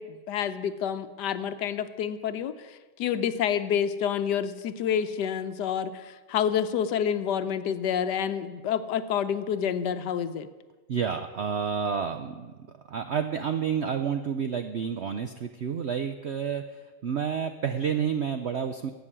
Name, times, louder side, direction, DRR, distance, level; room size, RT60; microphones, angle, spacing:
voice 1, 0.0-10.5, left 8 dB, 75° left, 11 dB, 1.3 m, -28 dB
voice 2, 10.9-12.5 12.9-18.9, right 7 dB, 70° right, 8 dB, 0.6 m, -30 dB
15.0 x 6.2 x 9.8 m, 1.3 s
omnidirectional pair, 1.9 m